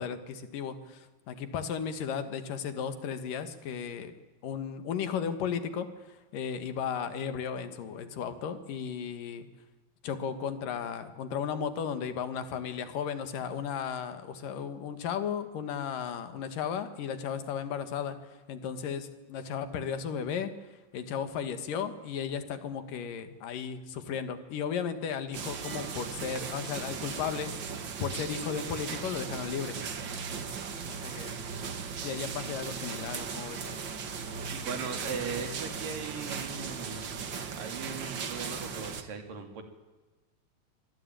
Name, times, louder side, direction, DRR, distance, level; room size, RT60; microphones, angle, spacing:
voice 1, 0.0-4.1 4.4-9.5 10.0-29.8 30.8-31.4 32.0-33.9, left 7 dB, 75° left, 9 dB, 3.4 m, -35 dB
sound 1, 25.3-39.0, right 6 dB, 45° right, 1.7 m, -37 dB
voice 2, 34.5-39.6, right 5 dB, 75° right, 5 dB, 4.6 m, -39 dB
25.5 x 19.0 x 9.1 m, 1.2 s
omnidirectional pair, 3.9 m